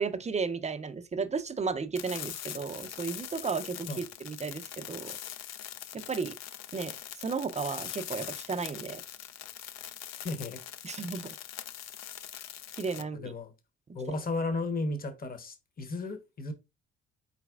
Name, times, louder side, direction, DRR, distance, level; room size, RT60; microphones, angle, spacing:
voice 1, 0.0-5.2 5.9-6.3 6.7-9.0 10.8-11.3 12.8-13.3, right 5 dB, 25° right, 0.5 m, -34 dB
sound 1, 2.0-13.0, left 11 dB, 60° left, 0.4 m, -42 dB
voice 2, 10.2-10.6 13.0-13.5 13.9-16.5, left 2 dB, 30° left, 0.9 m, -34 dB
4.0 x 4.0 x 2.3 m
cardioid pair, 90°, 30 cm